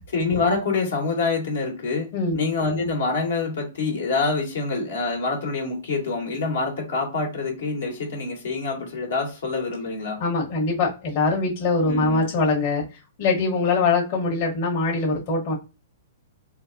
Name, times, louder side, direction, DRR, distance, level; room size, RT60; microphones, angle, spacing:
voice 1, 0.1-2.1 2.3-10.2 11.9-12.2, left 3 dB, 75° left, 1.4 m, -26 dB
voice 2, 10.2-12.8 13.2-15.5, left 3 dB, 50° left, 1.2 m, -22 dB
3.9 x 2.4 x 2.6 m
hypercardioid pair, 125°, 0 cm